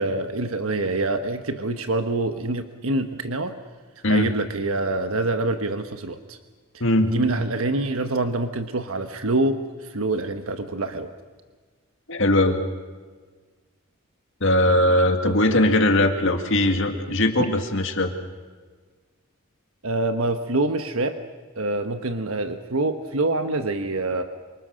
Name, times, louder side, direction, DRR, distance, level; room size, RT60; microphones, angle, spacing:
voice 1, 0.0-3.5 4.1-6.4 7.0-11.1 15.2-15.6 19.8-21.2 21.6-24.2, right 2 dB, 75° right, 7 dB, 1.3 m, -26 dB
voice 2, 6.8-7.2 12.1-12.6 14.4-18.1, left 1 dB, 60° left, 5 dB, 2.1 m, -20 dB
27.5 x 25.0 x 6.5 m, 1.4 s
head